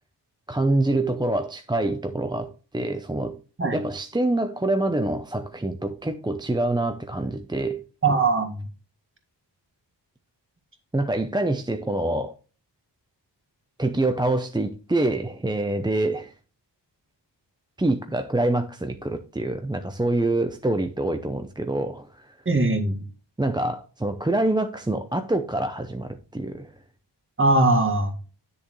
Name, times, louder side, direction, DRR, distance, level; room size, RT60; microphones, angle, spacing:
voice 1, 0.5-3.4 3.7-7.8 10.9-12.3 13.8-16.3 17.8-22.3 23.4-26.7, right 2 dB, 10° right, 0.6 m, -26 dB
voice 2, 8.0-8.6 22.5-23.0 27.4-28.1, right 2 dB, 30° right, 1.9 m, -21 dB
10.5 x 6.9 x 3.1 m
wide cardioid pair, 155°, 43 cm